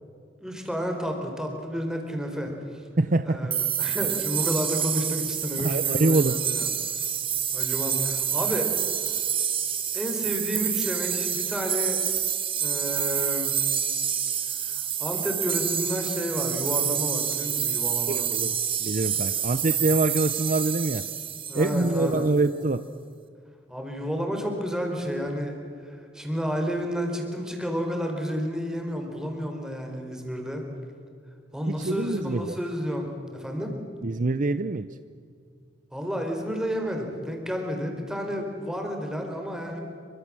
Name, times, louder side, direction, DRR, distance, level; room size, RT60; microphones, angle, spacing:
voice 1, 0.4-2.5 3.3-6.7 7.5-8.7 9.9-12.0 12.6-13.7 14.6-18.2 21.5-22.2 23.7-25.5 25.8-30.6 31.5-33.7 35.9-39.8, equal, 5° right, 2 dB, 4.4 m, -31 dB
voice 2, 3.0-3.5 5.6-6.4 18.1-21.0 21.5-22.8 31.7-32.5 34.0-34.9, right 2 dB, 45° right, 12 dB, 0.7 m, -25 dB
sound 1, 3.5-22.2, right 8 dB, 30° right, 2.0 m, -28 dB
26.5 x 25.0 x 7.6 m, 2.3 s
head